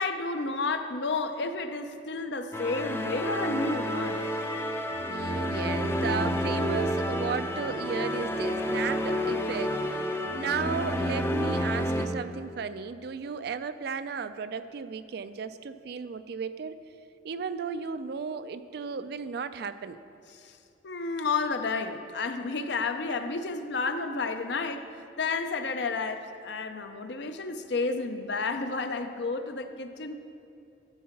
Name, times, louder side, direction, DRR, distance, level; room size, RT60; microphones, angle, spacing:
voice 1, 0.0-4.2 20.8-24.8 25.2-30.1, left 3 dB, 65° left, 8 dB, 0.6 m, -31 dB
sound 1, 2.5-12.1, equal, 15° left, 0.5 m, -29 dB
voice 2, 5.0-16.8 17.2-20.0, right 5 dB, 60° right, 12 dB, 0.4 m, -35 dB
12.5 x 4.7 x 5.8 m, 2.7 s
head